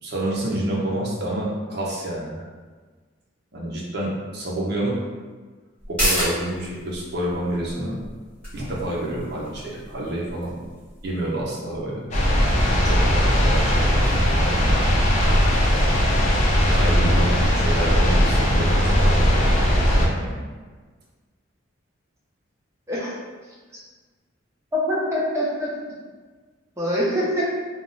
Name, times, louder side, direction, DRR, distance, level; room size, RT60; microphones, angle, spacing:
voice 1, 0.0-2.5 3.5-4.9 5.9-8.0 8.5-10.6 11.0-12.1 12.8-14.8 15.2-15.3 16.7-20.4, right 1 dB, 50° right, -4 dB, 0.6 m, -28 dB
sound 1, 5.8-12.9 13.3-13.4, equal, 5° left, 1.1 m, -32 dB
sound 2, 12.1-20.1, equal, 35° left, 0.4 m, -19 dB
voice 2, 24.7-25.7 26.8-27.4, equal, 15° right, -6 dB, 0.6 m, -24 dB
2.3 x 2.0 x 3.8 m, 1.4 s
head